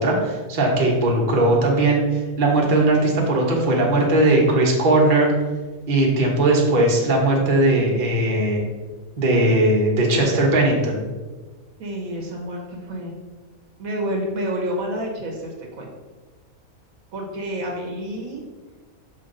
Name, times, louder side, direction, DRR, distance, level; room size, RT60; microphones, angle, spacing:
voice 1, 0.0-2.0 2.4-5.3 5.9-8.6 9.2-11.0, right 2 dB, 40° right, -2 dB, 1.2 m, -18 dB
voice 2, 11.8-13.1 13.8-15.9 17.1-18.4, equal, 75° right, 0 dB, 1.5 m, -29 dB
5.8 x 4.9 x 3.8 m, 1.3 s
omnidirectional pair, 1.5 m